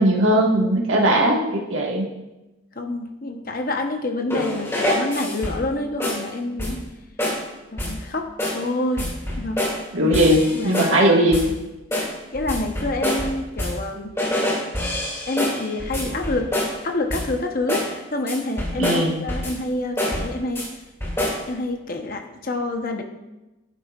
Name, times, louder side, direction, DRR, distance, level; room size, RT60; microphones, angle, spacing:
voice 1, 0.0-2.1 9.9-11.4 18.8-19.1, right 1 dB, 75° right, -1 dB, 1.6 m, -18 dB
voice 2, 2.7-6.8 7.7-9.7 9.9-10.2 10.5-10.8 11.1-11.2 12.3-14.2 15.3-16.5 16.8-20.7 21.5-23.0, left 2 dB, 45° left, 4 dB, 0.9 m, -27 dB
sound 1, 4.3-5.7 6.0-6.3 6.6-6.9 7.2-7.5 7.8-8.1 8.4-8.7 9.0-9.8 10.1-11.0 11.3-11.6 11.9-13.9 14.2-16.8 17.1-17.4 17.7-18.0 18.3-19.6 20.0-20.7 21.0-21.5, left 1 dB, 15° left, 2.4 m, -26 dB
11.5 x 9.9 x 2.4 m, 1.0 s
head